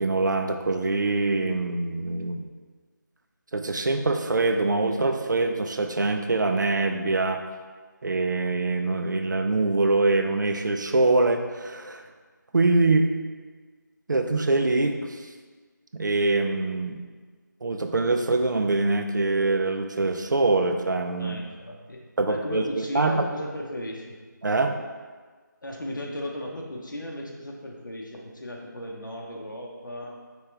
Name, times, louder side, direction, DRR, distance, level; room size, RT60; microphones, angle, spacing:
voice 1, 0.0-2.4 3.5-7.4 8.0-12.0 12.5-13.1 14.1-15.2 15.9-17.0 17.6-21.4 22.2-23.3 24.4-24.7, right 3 dB, 65° right, 5 dB, 0.5 m, -24 dB
voice 2, 21.2-22.0 22.3-24.2 25.6-30.2, left 1 dB, 75° left, -1 dB, 0.9 m, -36 dB
4.8 x 3.1 x 3.3 m, 1.5 s
figure-of-eight pair, 180°, 11 cm